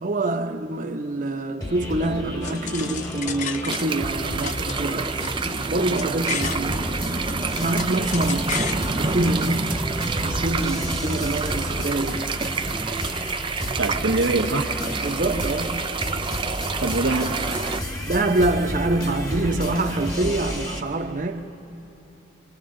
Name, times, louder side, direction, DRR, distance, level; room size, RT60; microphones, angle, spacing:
voice 1, 0.0-5.1 5.7-6.8 7.6-8.6 8.8-9.8 10.2-12.3 15.0-15.8 18.0-21.4, right 2 dB, 45° right, 0.8 m, -25 dB
sound 1, 1.6-20.8, left 1 dB, 20° left, 1.3 m, -31 dB
sound 2, 2.4-4.1 4.4-6.7 7.1-8.8, left 7 dB, 40° left, 0.5 m, -34 dB
sound 3, 3.7-17.8, right 5 dB, 25° right, 0.4 m, -28 dB
voice 2, 13.8-14.7 16.8-17.4, right 2 dB, 90° right, 1.3 m, -23 dB
27.5 x 26.5 x 3.8 m
head